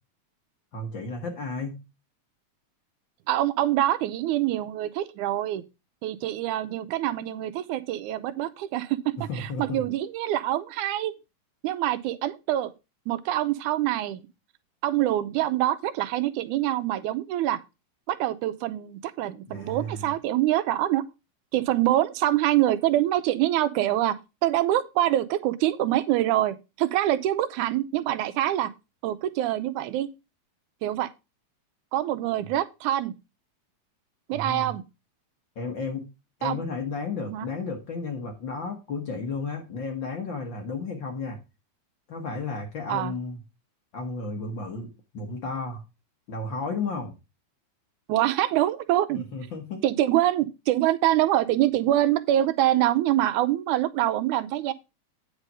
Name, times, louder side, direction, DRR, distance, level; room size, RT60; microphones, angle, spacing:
voice 1, 0.7-1.8 9.2-9.8 19.5-20.1 34.3-34.7 35.5-36.0 36.4-41.4 42.1-43.4 43.9-45.8 46.3-47.1 49.1-49.8, left 3 dB, 50° left, 1.7 m, -33 dB
voice 2, 3.3-5.6 6.0-11.1 11.6-12.7 13.1-14.2 14.8-17.6 18.1-21.0 21.5-24.2 24.4-28.7 29.0-30.1 30.8-31.1 31.9-33.1 34.3-34.8 36.4-36.6 37.3-37.5 42.9-43.1 48.1-49.2 49.8-54.7, right 13 dB, 85° right, 2.1 m, -25 dB
9.0 x 5.1 x 5.3 m
omnidirectional pair, 3.5 m